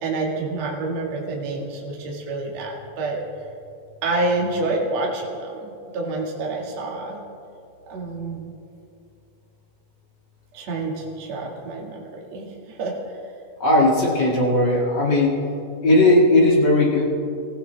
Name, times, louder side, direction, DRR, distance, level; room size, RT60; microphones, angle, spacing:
voice 1, 0.0-3.2 4.0-7.2 7.9-8.5 10.5-12.5 12.8-12.9, right 2 dB, 50° right, -2 dB, 2.8 m, -28 dB
voice 2, 13.6-15.4 15.8-17.0, left 1 dB, 35° left, -3 dB, 2.1 m, -17 dB
24.0 x 15.0 x 3.4 m, 2.6 s
omnidirectional pair, 4.6 m